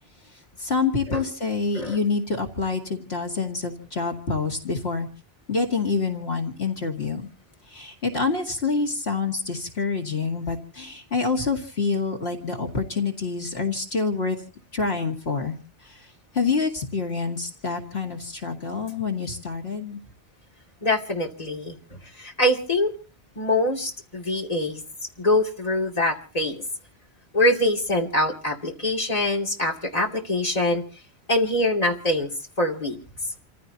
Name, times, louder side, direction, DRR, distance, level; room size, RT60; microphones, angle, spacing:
voice 1, 0.6-5.1 5.5-7.3 7.7-14.4 14.7-15.6 15.8-16.0 16.3-20.0, left 4 dB, 75° left, 2 dB, 2.4 m, -27 dB
voice 2, 20.8-21.8 22.2-22.9 23.4-24.8 25.2-26.6 27.3-30.8 31.3-32.3 32.6-33.0, left 1 dB, 35° left, 1 dB, 2.8 m, -24 dB
29.0 x 15.5 x 2.9 m, 0.36 s
omnidirectional pair, 1.1 m